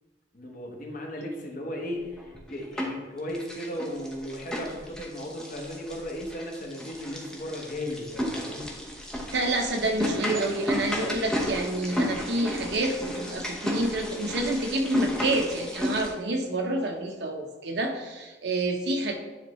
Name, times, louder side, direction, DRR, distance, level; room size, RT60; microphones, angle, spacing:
voice 1, 0.3-8.7, left 1 dB, 50° left, 0 dB, 1.2 m, -36 dB
sound 1, 2.2-3.0 3.3-16.1, left 1 dB, 5° left, 0.9 m, -33 dB
voice 2, 9.3-19.2, right 2 dB, 65° right, 3 dB, 0.8 m, -28 dB
9.8 x 3.6 x 3.1 m, 1.2 s
head